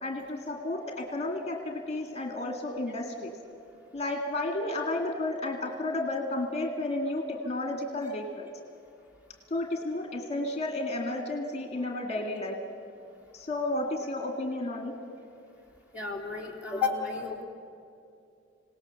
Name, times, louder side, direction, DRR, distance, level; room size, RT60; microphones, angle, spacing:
voice 1, 0.0-3.3 3.9-8.5 9.5-12.6 13.3-14.9 16.4-16.5, left 2 dB, 35° left, 2 dB, 2.0 m, -32 dB
voice 2, 15.9-17.4, left 5 dB, 10° right, -1 dB, 3.5 m, -32 dB
27.0 x 18.5 x 7.1 m, 2.6 s
head